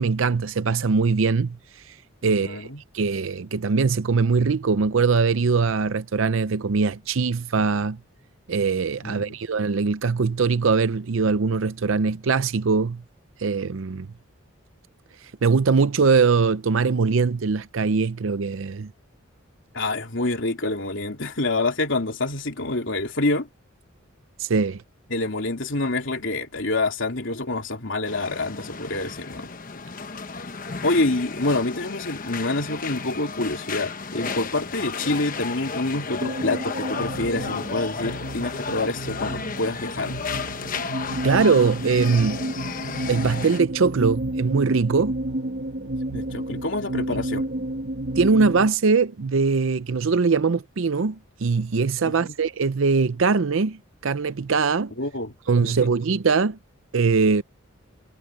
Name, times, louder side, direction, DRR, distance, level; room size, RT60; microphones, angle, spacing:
voice 1, 0.0-1.6 2.2-2.7 2.9-8.0 8.5-13.0 13.4-14.1 15.4-18.9 24.4-24.8 41.2-42.4 43.1-45.2 48.2-54.9 55.5-56.6 56.9-57.4, right 4 dB, 75° right, 0.6 m, -21 dB
voice 2, 2.3-2.8 9.0-9.4 19.7-23.5 25.1-29.5 30.8-40.2 46.1-47.5 52.0-52.3 55.0-55.4 55.6-55.9, left 2 dB, 65° left, 3.3 m, -27 dB
sound 1, 28.0-43.6, left 5 dB, 40° left, 1.0 m, -33 dB
sound 2, 36.2-48.7, right 1 dB, 55° right, 1.7 m, -31 dB
head